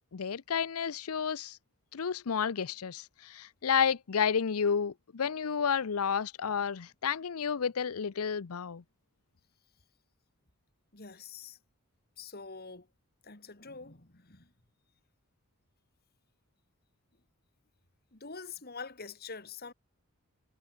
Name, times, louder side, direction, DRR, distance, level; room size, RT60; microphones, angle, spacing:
voice 1, 0.1-1.6 1.9-8.8, left 7 dB, 80° left, 0.6 m, -31 dB
voice 2, 10.9-11.6 12.2-12.9 13.2-14.5 18.1-19.7, left 5 dB, 45° left, 3.1 m, -45 dB
head